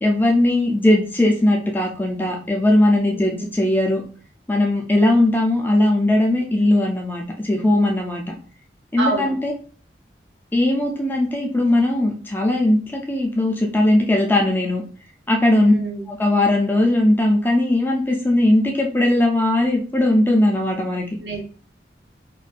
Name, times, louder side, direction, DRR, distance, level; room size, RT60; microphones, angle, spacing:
voice 1, 0.0-4.0 4.5-8.3 8.9-9.5 10.5-14.8 15.3-15.7 16.1-21.1, left 1 dB, 10° left, 0 dB, 0.4 m, -19 dB
voice 2, 3.0-3.5 9.0-9.3 15.5-16.1 21.2-21.4, right 3 dB, 75° right, -1 dB, 0.7 m, -28 dB
2.5 x 2.2 x 2.3 m, 0.40 s
head